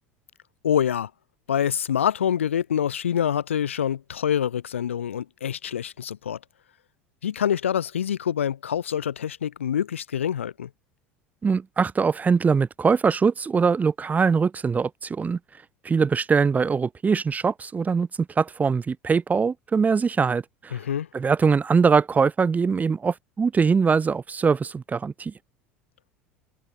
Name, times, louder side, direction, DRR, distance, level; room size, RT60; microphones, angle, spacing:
voice 1, 0.6-1.1 1.5-6.4 7.2-10.7 20.7-21.1, left 9 dB, 80° left, 5.1 m, -26 dB
voice 2, 11.4-15.4 15.8-20.8 21.1-25.3, right 5 dB, 25° right, 2.0 m, -22 dB
open air
hypercardioid pair, 75°, 7 cm